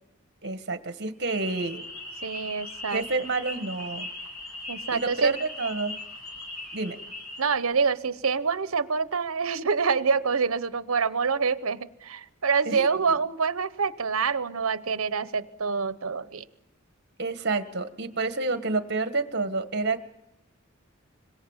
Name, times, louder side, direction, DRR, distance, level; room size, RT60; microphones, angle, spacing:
voice 1, 0.4-1.8 2.9-4.1 4.9-6.0 6.7-7.0 12.7-13.2 17.2-20.0, right 3 dB, 55° right, 9 dB, 1.7 m, -29 dB
sound 1, 1.2-7.6, left 2 dB, 80° left, 3.2 m, -39 dB
voice 2, 2.2-3.0 4.7-5.3 7.4-16.4, right 5 dB, 80° right, 14 dB, 1.0 m, -26 dB
26.5 x 22.0 x 7.4 m, 0.87 s
head